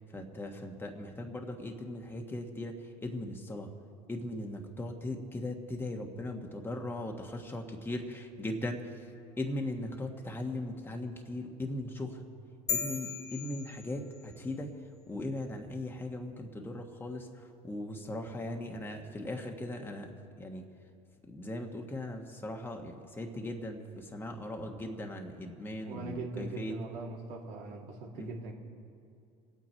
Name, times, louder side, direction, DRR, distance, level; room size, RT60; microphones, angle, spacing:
voice 1, 0.1-3.7 4.1-9.1 9.4-12.3 12.7-14.7 15.1-20.6 21.2-26.8 28.1-28.4, left 1 dB, 15° left, 2 dB, 1.4 m, -39 dB
sound 1, 12.7-14.4, left 6 dB, 50° left, 1.4 m, -37 dB
voice 2, 25.9-28.5, right 3 dB, 75° right, -1 dB, 2.4 m, -41 dB
25.5 x 8.8 x 4.5 m, 2.4 s
supercardioid pair, 100°, 15 cm